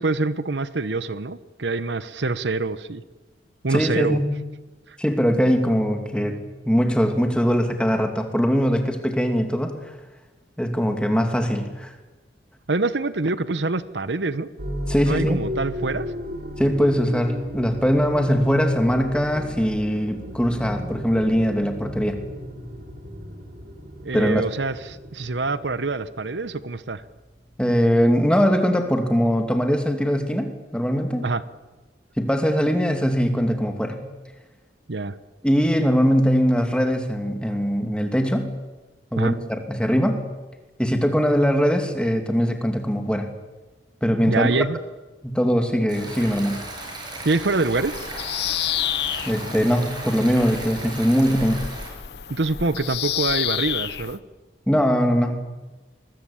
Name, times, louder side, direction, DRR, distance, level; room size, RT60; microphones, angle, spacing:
voice 1, 0.0-3.0 3.6-4.2 4.9-5.0 12.7-14.5 15.0-16.1 24.0-27.0 31.2-31.4 34.9-35.1 39.2-39.3 44.3-44.8 47.2-48.0 52.3-54.2, right 3 dB, 75° right, 14 dB, 1.0 m, -25 dB
voice 2, 3.7-4.4 5.0-9.9 10.6-11.9 14.9-15.4 16.6-22.2 24.1-24.4 27.6-31.3 32.2-34.0 35.4-38.5 39.1-40.2 40.8-43.3 44.0-44.6 45.2-46.6 49.3-51.7 54.7-55.4, equal, 5° left, 5 dB, 2.6 m, -21 dB
sound 1, 14.6-27.7, equal, 60° right, 4.0 m, -35 dB
Stream, 45.9-51.9, right 2 dB, 25° right, 7.2 m, -36 dB
Bird vocalization bird call bird song, 47.8-54.2, left 12 dB, 65° left, 0.8 m, -30 dB
24.0 x 21.5 x 8.7 m, 1.2 s
head